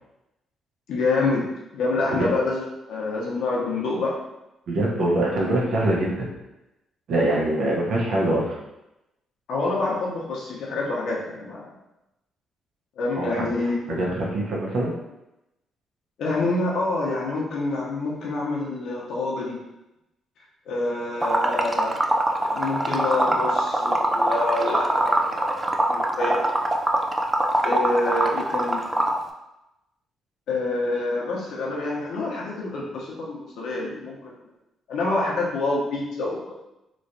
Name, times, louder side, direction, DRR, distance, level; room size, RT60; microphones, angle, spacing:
voice 1, 0.9-1.5 1.7-4.2 9.5-11.6 13.0-13.9 16.2-19.6 20.7-22.0 22.4-26.4 27.6-28.8 30.5-34.4 34.9-36.5, left 2 dB, 75° left, -3 dB, 0.9 m, -27 dB
voice 2, 4.7-6.3 7.1-8.5 13.1-13.4 13.9-14.9, right 1 dB, 70° right, -3 dB, 1.0 m, -24 dB
Liquid, 21.2-29.2, right 1 dB, 15° right, 0.4 m, -23 dB
3.1 x 3.1 x 2.7 m, 0.93 s
cardioid pair, 90°, 0 cm